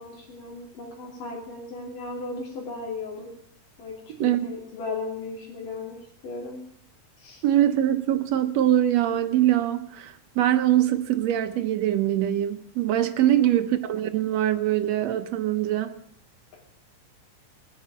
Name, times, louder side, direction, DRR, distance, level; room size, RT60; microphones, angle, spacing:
voice 1, 0.0-3.3 3.8-3.9 4.2-6.0 6.2-6.6 7.2-7.4 13.2-13.5, left 3 dB, 80° left, -3 dB, 4.6 m, -36 dB
voice 2, 7.4-15.9, right 12 dB, 65° right, 8 dB, 1.9 m, -23 dB
20.0 x 9.5 x 7.5 m, 0.69 s
omnidirectional pair, 3.7 m